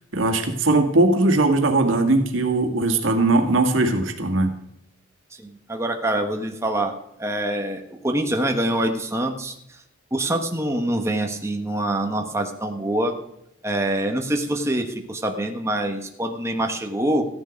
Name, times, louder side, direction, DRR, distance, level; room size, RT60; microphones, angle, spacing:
voice 1, 0.1-4.5, right 2 dB, 85° right, 4 dB, 1.9 m, -19 dB
voice 2, 5.4-6.9 7.2-9.5 10.1-13.1 13.6-17.3, right 1 dB, 15° right, 3 dB, 1.2 m, -25 dB
14.5 x 10.5 x 5.2 m, 0.80 s
head